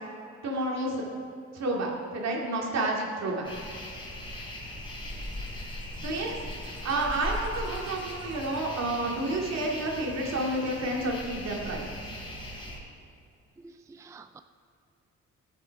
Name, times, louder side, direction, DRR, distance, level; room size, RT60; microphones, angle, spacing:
voice 1, 0.4-1.1 1.5-3.5 6.0-11.9, right 2 dB, 60° right, -1 dB, 2.5 m, -30 dB
sound 1, 3.4-12.8, left 1 dB, 15° left, 3.2 m, -39 dB
voice 2, 13.6-14.4, right 4 dB, 10° right, 9 dB, 0.4 m, -49 dB
15.5 x 8.7 x 4.7 m, 2.5 s
cardioid pair, 90°, 30 cm